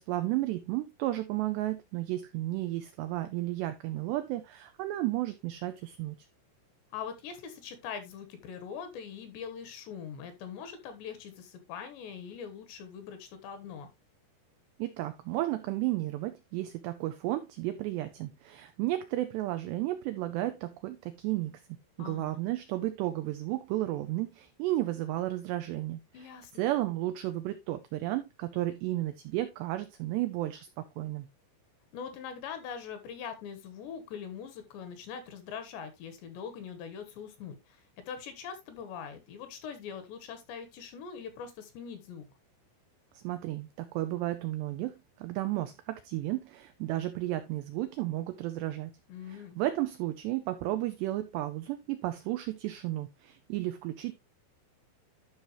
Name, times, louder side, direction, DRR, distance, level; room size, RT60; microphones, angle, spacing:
voice 1, 0.0-6.2 14.8-21.6 22.0-26.3 26.5-31.3 43.1-48.9 49.3-54.1, right 15 dB, 85° right, 2.4 m, -33 dB
voice 2, 6.9-13.9 22.0-22.4 26.1-26.7 31.9-42.2 49.1-49.6, left 7 dB, 70° left, 3.1 m, -42 dB
12.0 x 5.7 x 3.0 m
omnidirectional pair, 5.8 m